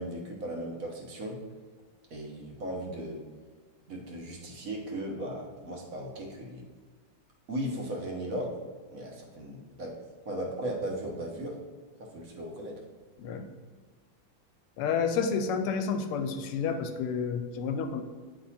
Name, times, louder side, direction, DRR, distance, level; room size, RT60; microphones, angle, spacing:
voice 1, 0.0-1.4 2.1-3.2 3.9-6.6 7.5-8.5 8.9-9.9 10.2-11.6 12.0-12.7, right 1 dB, 50° right, 0 dB, 1.2 m, -36 dB
voice 2, 14.8-18.0, left 6 dB, 90° left, 7 dB, 1.5 m, -30 dB
9.5 x 3.4 x 4.2 m, 1.5 s
omnidirectional pair, 2.4 m